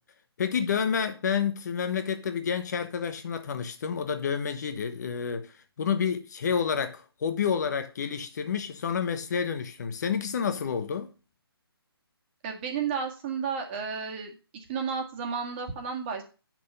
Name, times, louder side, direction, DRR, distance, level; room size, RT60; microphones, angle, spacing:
voice 1, 0.4-5.5 5.8-11.1, left 7 dB, 45° left, 1.0 m, -29 dB
voice 2, 12.4-16.2, right 6 dB, 25° right, 1.7 m, -32 dB
8.6 x 6.1 x 5.4 m
hypercardioid pair, 155°, 13 cm